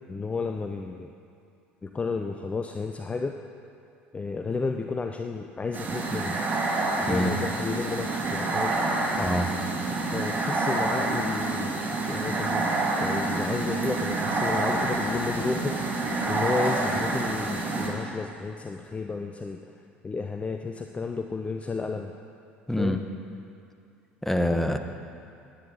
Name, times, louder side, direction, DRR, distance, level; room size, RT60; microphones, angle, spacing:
voice 1, 0.1-1.1 1.8-3.4 4.1-6.4 7.0-8.7 10.1-11.7 12.1-12.7 13.0-15.8 16.3-19.7 20.0-22.1 22.8-23.0, left 4 dB, 20° left, 5 dB, 0.6 m, -32 dB
sound 1, 5.7-17.9, right 2 dB, 30° right, 2.7 m, -28 dB
voice 2, 7.1-7.4 9.2-9.5 22.7-23.0 24.2-24.8, equal, 5° left, 7 dB, 1.0 m, -25 dB
20.5 x 9.3 x 4.1 m, 2.5 s
figure-of-eight pair, 65°, 6 cm